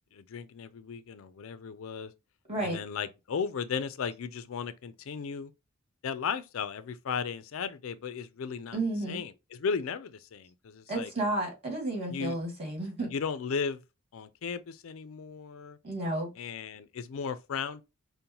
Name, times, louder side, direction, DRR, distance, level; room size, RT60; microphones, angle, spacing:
voice 1, 0.1-2.1 2.6-5.5 6.0-8.8 9.1-11.1 12.1-12.4 13.1-13.8 14.1-15.8 16.4-17.8, left 6 dB, 70° left, 0.4 m, -35 dB
voice 2, 2.5-2.8 8.7-9.2 10.9-13.1 15.8-16.3, right 2 dB, 30° right, 2.1 m, -32 dB
5.3 x 2.1 x 2.8 m
head